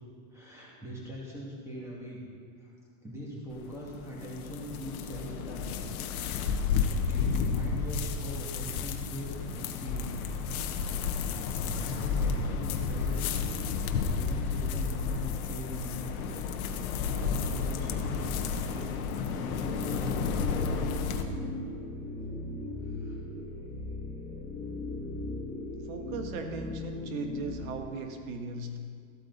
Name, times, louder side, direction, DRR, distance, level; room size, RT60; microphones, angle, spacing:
voice 1, 0.3-2.2 2.6-2.7 3.0-5.8 6.6-10.2 10.6-10.7 11.1-13.3 13.7-16.4 16.9-20.2 20.5-20.9 22.8-23.2, equal, 5° right, -5 dB, 2.3 m, -42 dB
sound 1, 3.5-21.2, left 5 dB, 85° left, 1.1 m, -32 dB
sound 2, 19.6-27.5, left 2 dB, 15° left, 1.4 m, -38 dB
voice 2, 25.9-28.8, right 4 dB, 70° right, 4 dB, 1.5 m, -38 dB
14.0 x 8.4 x 4.1 m, 2.1 s
supercardioid pair, 160°, 42 cm